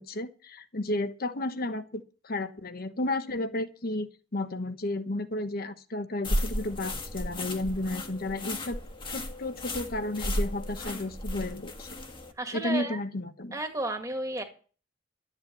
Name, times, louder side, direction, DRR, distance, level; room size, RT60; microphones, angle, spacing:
voice 1, 0.0-8.8 9.1-12.0 12.5-13.6, left 2 dB, 50° left, 10 dB, 1.2 m, -33 dB
sound 1, 6.2-12.3, left 1 dB, 25° left, 1.6 m, -34 dB
voice 2, 12.4-13.0 13.5-14.4, right 2 dB, 15° right, 4 dB, 1.9 m, -33 dB
12.5 x 8.0 x 7.8 m, 0.39 s
head